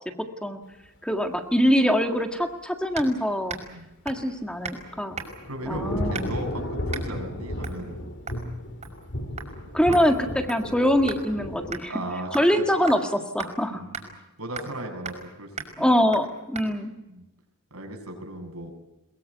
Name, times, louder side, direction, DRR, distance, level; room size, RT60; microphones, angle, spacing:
voice 1, 1.0-3.6 4.0-5.2 5.7-6.3 9.7-10.1 10.5-11.9 12.3-13.8 15.8-16.9, equal, 5° left, 4 dB, 1.8 m, -23 dB
sound 1, 3.0-3.2 3.5-3.7 4.1-4.3 4.6-4.8 5.2-5.5 6.1-6.5 6.9-7.1 7.6-7.8 8.3-8.5 8.8-9.1 9.4-9.5 9.9-11.3 11.7-11.8 12.3-12.6 12.9-13.0 13.4-13.5 13.9-14.1 14.6-14.8 15.1-15.3 15.6-15.7 16.1-16.3 16.6-16.7, right 5 dB, 30° right, 5.4 m, -37 dB
Thunder / Rain, 4.4-11.8, left 1 dB, 55° left, 2.7 m, -34 dB
voice 2, 5.4-8.0 9.9-10.0 11.9-12.6 13.6-14.1 14.4-15.5 15.8-16.0 17.1-17.3 17.7-18.7, right 1 dB, 85° right, 4 dB, 6.9 m, -36 dB
22.5 x 22.0 x 8.2 m, 0.95 s
head